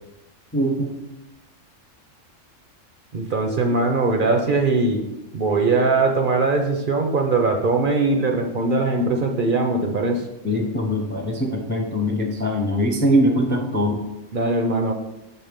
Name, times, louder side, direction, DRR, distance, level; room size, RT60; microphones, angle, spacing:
voice 1, 0.5-0.9 10.4-14.0, equal, 15° left, 3 dB, 0.4 m, -22 dB
voice 2, 3.1-5.0 5.3-10.2 14.3-14.9, right 3 dB, 50° right, 3 dB, 0.7 m, -21 dB
6.1 x 4.6 x 5.1 m, 0.96 s
omnidirectional pair, 1.3 m